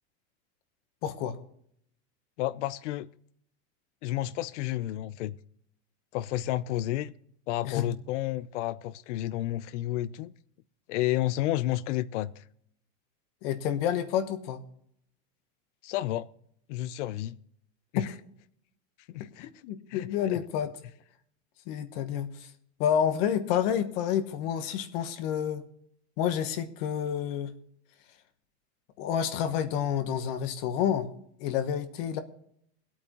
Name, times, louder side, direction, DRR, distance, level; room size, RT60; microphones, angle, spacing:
voice 1, 1.0-1.4 7.6-7.8 13.4-14.6 17.9-18.1 19.4-20.7 21.7-22.5 22.8-25.6 26.2-27.5 29.0-31.1 31.4-32.2, left 9 dB, 55° left, 1.1 m, -29 dB
voice 2, 2.4-3.1 4.0-5.4 6.1-7.1 7.5-10.3 10.9-12.4 15.8-16.3 16.7-17.4 17.9-18.1 19.1-19.5 19.9-20.4, left 15 dB, 85° left, 0.6 m, -31 dB
23.0 x 8.6 x 3.0 m
supercardioid pair, 170°, 35 cm